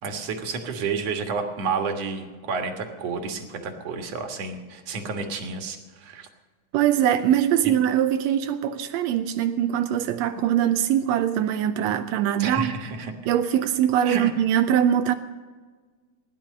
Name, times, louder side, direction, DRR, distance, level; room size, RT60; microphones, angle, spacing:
voice 1, 0.0-6.3 7.6-7.7 12.4-13.1 14.0-14.3, right 5 dB, 60° right, 2.5 m, -30 dB
voice 2, 6.7-12.7 13.3-15.1, right 10 dB, 80° right, 1.6 m, -22 dB
17.5 x 10.5 x 6.5 m
omnidirectional pair, 3.6 m